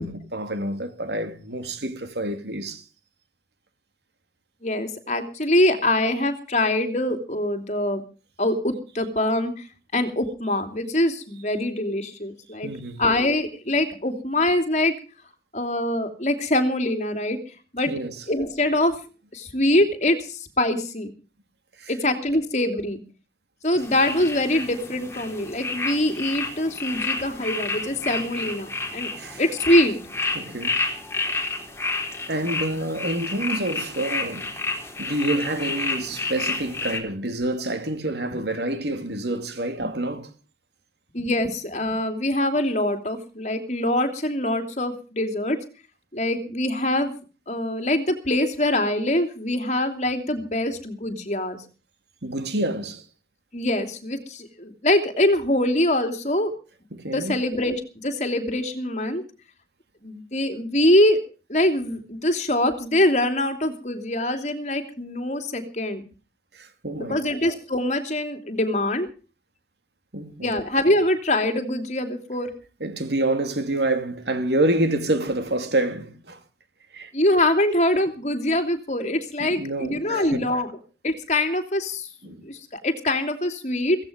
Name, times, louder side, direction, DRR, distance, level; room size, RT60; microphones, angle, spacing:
voice 1, 0.0-2.8 12.6-13.0 17.9-18.2 21.8-21.9 29.2-29.4 30.3-30.8 32.3-34.5 35.0-40.3 52.2-53.0 56.9-57.4 66.5-67.2 70.1-70.6 72.8-76.4 76.9-77.1 79.4-80.5 82.2-82.4, right 1 dB, 75° right, 2.7 m, -27 dB
voice 2, 4.6-8.0 8.4-9.7 9.9-12.7 13.0-14.9 15.5-17.4 17.7-17.9 18.3-18.9 19.3-21.1 21.9-23.0 23.6-29.1 29.4-30.0 41.1-45.6 46.1-47.1 47.5-51.6 53.5-56.5 57.1-59.2 60.0-61.2 61.5-66.1 67.1-69.1 70.4-72.5 77.1-80.7 81.0-82.1 82.4-84.0, left 1 dB, 40° left, 3.0 m, -24 dB
sound 1, 23.8-37.0, left 3 dB, 15° left, 3.7 m, -30 dB
16.5 x 15.5 x 5.2 m
head